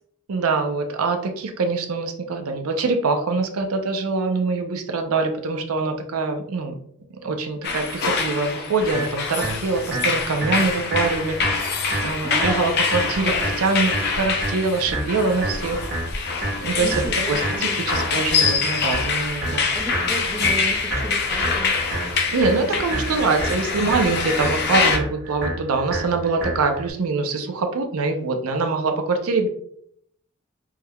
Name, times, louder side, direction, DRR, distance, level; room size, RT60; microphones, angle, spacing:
voice 1, 0.3-6.7 7.2-11.7 12.0-15.8 16.6-19.6 22.3-29.5, right 3 dB, 85° right, 5 dB, 0.5 m, -24 dB
sound 1, 7.6-25.0, left 5 dB, 50° left, 0.5 m, -25 dB
sound 2, 8.9-26.9, right 1 dB, 70° right, 1.4 m, -30 dB
voice 2, 12.2-12.7 16.8-17.8 19.7-21.7 22.5-23.6, right 2 dB, 15° right, 4 dB, 0.3 m, -34 dB
3.6 x 3.0 x 2.2 m, 0.67 s
head